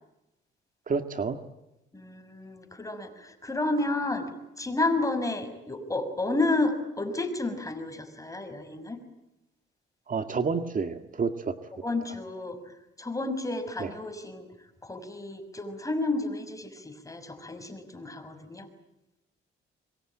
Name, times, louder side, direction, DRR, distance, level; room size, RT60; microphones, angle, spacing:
voice 1, 0.9-1.4 10.1-11.5 13.8-13.9, right 5 dB, 40° right, 8 dB, 1.9 m, -29 dB
voice 2, 1.9-4.3 4.6-9.0 11.8-14.5 14.8-18.7, left 2 dB, 15° left, 8 dB, 6.3 m, -31 dB
26.5 x 23.5 x 8.8 m, 0.91 s
cardioid pair, 90°, 20 cm